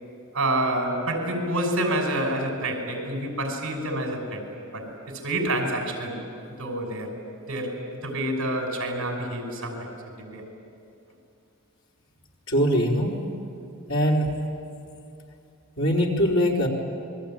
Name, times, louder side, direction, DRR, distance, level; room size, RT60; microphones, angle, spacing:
voice 1, 0.3-4.4 4.7-4.9 5.2-6.2 6.6-7.1 7.5-10.4, right 1 dB, 65° right, 2 dB, 5.7 m, -28 dB
voice 2, 12.5-13.2 13.9-14.3 15.8-16.7, equal, 65° left, -2 dB, 4.1 m, -22 dB
28.0 x 21.5 x 9.0 m, 2.5 s
head